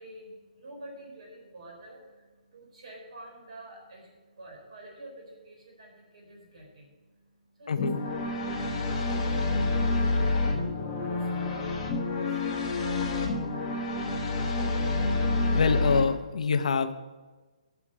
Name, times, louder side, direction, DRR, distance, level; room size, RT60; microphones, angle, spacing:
voice 1, 0.0-7.9 8.3-14.5, right 1 dB, 50° right, 0 dB, 3.9 m, -50 dB
voice 2, 7.7-8.0 15.5-16.9, left 5 dB, 60° left, 9 dB, 0.7 m, -26 dB
sound 1, 7.8-16.0, left 2 dB, 15° left, 1.3 m, -28 dB
8.5 x 6.8 x 8.1 m, 1.3 s
hypercardioid pair, 175°, 4 cm